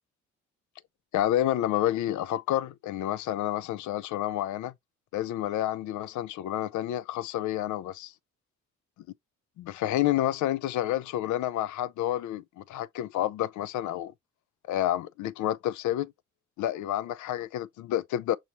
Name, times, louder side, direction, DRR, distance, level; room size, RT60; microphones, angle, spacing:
voice 1, 1.1-4.7 5.1-8.1 9.6-14.1 14.7-16.1 16.6-18.4, left 13 dB, 75° left, 0.5 m, -29 dB
5.5 x 3.1 x 2.8 m
cardioid pair, 90°, 30 cm